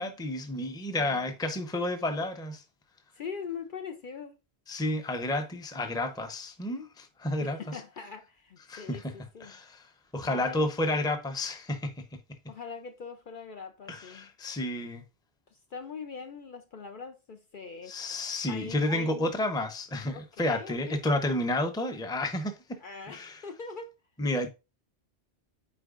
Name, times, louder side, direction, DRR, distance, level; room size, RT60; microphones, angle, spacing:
voice 1, 0.0-2.6 4.7-7.8 8.7-9.1 9.4-9.8 10.1-11.9 13.9-15.0 17.9-22.8 23.1-23.4 24.2-24.5, left 1 dB, 5° left, 0.6 m, -31 dB
voice 2, 1.0-1.3 3.1-4.4 7.4-9.6 10.2-11.0 12.5-14.3 15.5-18.0 18.5-19.3 20.1-21.0 22.8-23.9, left 5 dB, 55° left, 0.7 m, -42 dB
8.5 x 4.5 x 2.4 m
omnidirectional pair, 1.1 m